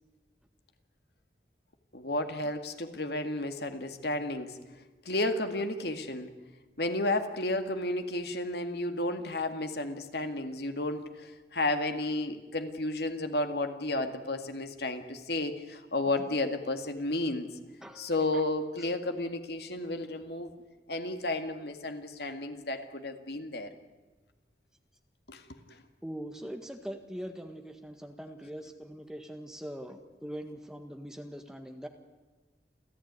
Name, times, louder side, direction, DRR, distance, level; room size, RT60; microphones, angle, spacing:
voice 1, 1.9-4.6 5.1-6.3 6.8-17.5 18.0-20.5 20.9-23.7 25.3-25.4 25.7-25.8, left 2 dB, 70° left, 7 dB, 2.2 m, -32 dB
voice 2, 17.8-18.3 26.0-31.9, equal, 5° right, 5 dB, 1.6 m, -42 dB
28.0 x 15.0 x 9.7 m, 1.2 s
head